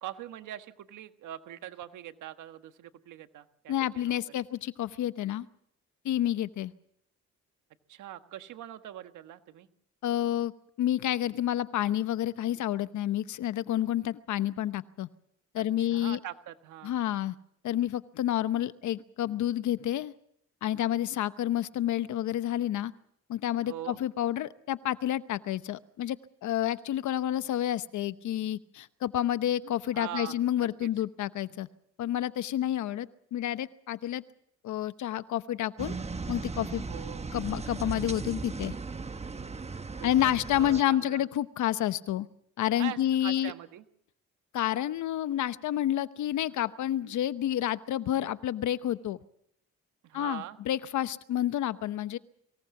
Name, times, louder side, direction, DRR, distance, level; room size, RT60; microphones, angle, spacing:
voice 1, 0.0-4.4 7.9-9.7 15.6-17.0 23.6-24.0 29.9-30.9 36.9-37.3 40.0-41.2 42.8-43.8 50.0-50.6, right 12 dB, 80° right, 8 dB, 1.6 m, -42 dB
voice 2, 3.7-5.5 6.0-6.7 10.0-10.5 10.8-15.1 15.5-16.2 16.8-17.4 17.6-20.1 20.6-22.9 23.3-26.2 26.4-31.7 32.0-34.2 34.6-35.9 36.3-36.8 37.3-38.7 40.0-42.3 42.6-43.5 44.5-49.2 50.1-52.2, left 12 dB, 75° left, 14 dB, 1.0 m, -29 dB
sound 1, 35.8-40.8, right 4 dB, 20° right, 1.1 m, -37 dB
23.5 x 18.0 x 7.2 m, 0.72 s
cardioid pair, 90°, 30 cm